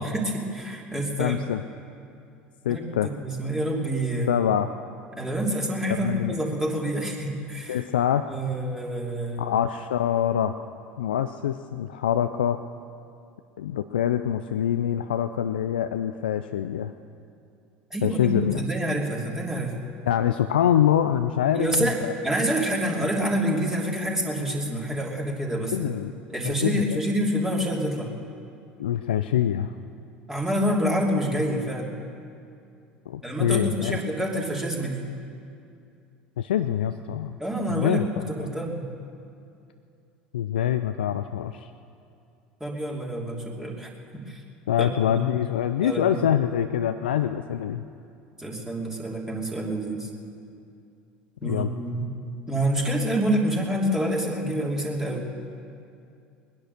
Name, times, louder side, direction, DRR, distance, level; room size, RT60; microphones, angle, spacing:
voice 1, 0.0-1.4 2.7-4.3 5.1-7.8 8.3-9.5 17.9-19.9 21.5-22.0 22.2-25.9 26.3-28.1 30.3-32.0 33.2-35.1 37.4-38.8 42.6-44.4 44.8-45.2 45.8-46.2 48.4-50.1 51.4-52.1 52.5-55.3, right 1 dB, 10° right, -3 dB, 3.0 m, -27 dB
voice 2, 1.2-1.6 2.6-3.1 4.3-4.7 5.9-6.3 7.7-8.3 9.4-10.6 11.0-12.6 13.6-16.9 18.0-18.6 20.0-22.1 25.7-26.2 26.4-27.0 28.8-29.7 33.1-34.0 36.4-37.4 37.7-38.5 40.3-41.7 44.7-47.8 51.4-51.7, left 10 dB, 80° left, 10 dB, 0.4 m, -25 dB
20.5 x 10.5 x 6.6 m, 2.5 s
hypercardioid pair, 70°, 5 cm